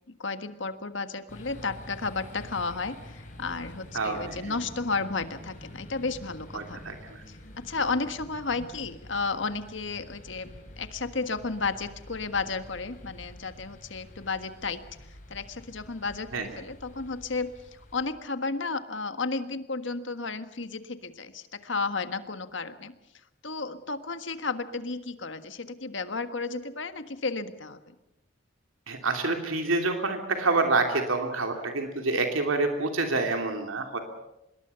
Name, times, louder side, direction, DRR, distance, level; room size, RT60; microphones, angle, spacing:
voice 1, 0.1-6.8 7.3-10.5 10.8-14.8 15.3-17.5 17.9-22.9 23.4-27.8, left 4 dB, 65° left, 10 dB, 1.6 m, -33 dB
sound 1, 1.3-18.1, equal, 40° left, 6.5 m, -47 dB
voice 2, 3.9-4.5 6.5-7.2 16.3-16.5 28.9-34.0, right 3 dB, 85° right, 4 dB, 2.9 m, -27 dB
25.5 x 21.5 x 6.9 m, 0.88 s
head